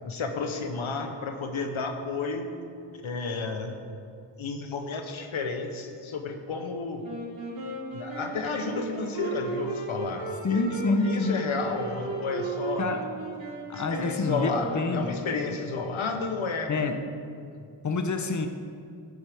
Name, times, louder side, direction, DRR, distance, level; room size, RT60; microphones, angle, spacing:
voice 1, 0.0-2.5 3.0-3.8 4.4-7.1 7.9-12.9 13.7-16.7 17.4-17.6, left 4 dB, 85° left, 5 dB, 1.0 m, -32 dB
Wind instrument woodwind instrument, 7.0-15.8, right 3 dB, 75° right, 2.7 m, -36 dB
voice 2, 10.4-11.4 12.8-13.1 13.7-15.2 16.7-17.1 17.8-18.5, left 3 dB, 40° left, 7 dB, 0.9 m, -27 dB
13.0 x 9.3 x 3.5 m, 2.4 s
cardioid pair, 40°, 47 cm